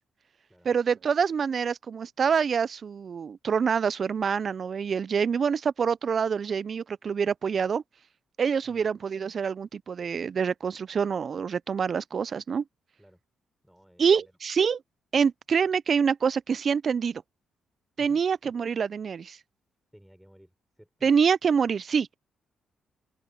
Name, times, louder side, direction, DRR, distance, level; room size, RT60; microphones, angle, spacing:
voice 1, 0.6-7.8 8.4-12.6 14.0-14.8 15.1-17.2 18.0-19.4 21.0-22.2, right 6 dB, 55° right, 0.5 m, -26 dB
voice 2, 13.6-14.3 18.0-18.2 19.9-21.1, equal, 5° right, 6.2 m, -56 dB
open air
supercardioid pair, 60°, 0 cm